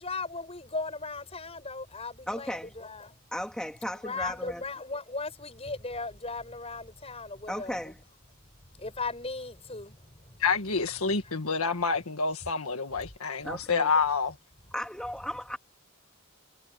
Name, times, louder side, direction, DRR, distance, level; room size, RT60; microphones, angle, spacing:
voice 1, 0.0-3.2 4.0-7.9 8.7-10.4 11.2-11.3, left 3 dB, 25° left, 7.4 m, -37 dB
voice 2, 2.3-2.7 3.3-4.6 7.5-7.9 13.4-13.9 14.7-15.6, equal, 5° left, 2.5 m, -35 dB
voice 3, 10.4-14.4, left 5 dB, 80° left, 1.7 m, -28 dB
head